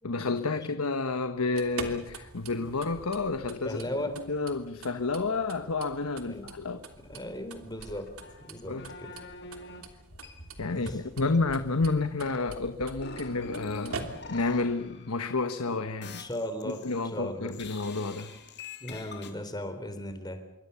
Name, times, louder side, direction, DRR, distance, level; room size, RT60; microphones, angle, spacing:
voice 1, 0.0-6.9 8.7-8.9 10.6-16.3 16.6-18.3, left 3 dB, 80° left, 9 dB, 1.2 m, -30 dB
sound 1, 1.4-14.6, right 3 dB, 75° right, 3.1 m, -45 dB
voice 2, 3.6-4.1 6.2-6.6 7.0-8.1 8.4-9.1 10.7-11.0 16.2-16.8 17.1-17.5 18.8-20.4, left 1 dB, 20° left, 8 dB, 3.6 m, -37 dB
sound 2, 7.8-9.8 10.1-10.8 11.2-15.6 16.0-17.1 17.5-19.3, left 3 dB, 50° left, 3.3 m, -45 dB
27.5 x 24.0 x 7.1 m, 0.90 s
head